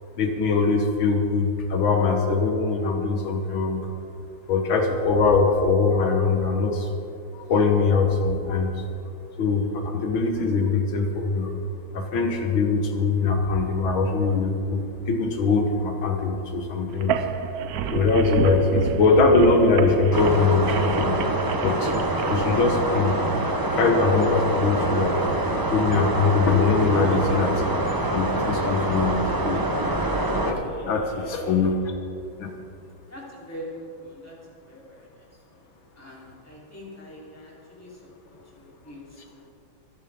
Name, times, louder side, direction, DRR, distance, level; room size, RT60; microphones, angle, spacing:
voice 1, 0.2-3.9 4.5-6.9 7.3-8.8 9.4-11.5 11.9-17.2 17.9-21.2 21.6-21.9 22.3-23.2 23.7-27.6 28.1-29.7 30.5-31.8 32.4-32.5, left 4 dB, 80° left, 3 dB, 2.0 m, -22 dB
sound 1, 16.9-22.3, right 7 dB, 65° right, 1.0 m, -30 dB
Male speech man speaking, 19.8-31.7, left 3 dB, 65° left, 2.5 m, -44 dB
sound 2, 20.1-30.5, right 2 dB, 30° right, 0.4 m, -25 dB
voice 2, 31.4-31.7 33.1-34.4 34.6-35.7 35.9-39.5, equal, 5° left, -6 dB, 3.5 m, -43 dB
25.5 x 11.0 x 3.7 m, 2.6 s
omnidirectional pair, 2.1 m